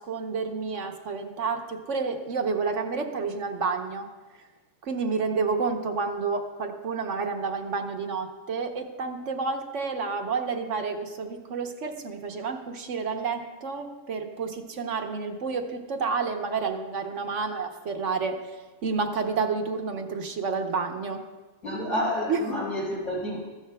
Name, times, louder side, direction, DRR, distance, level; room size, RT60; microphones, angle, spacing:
voice 1, 0.0-4.1 4.8-18.4 18.8-21.2 22.3-22.5, right 4 dB, 65° right, 4 dB, 1.1 m, -30 dB
voice 2, 21.6-23.4, left 1 dB, 85° left, -5 dB, 4.6 m, -29 dB
14.5 x 12.0 x 2.3 m, 1.3 s
omnidirectional pair, 1.5 m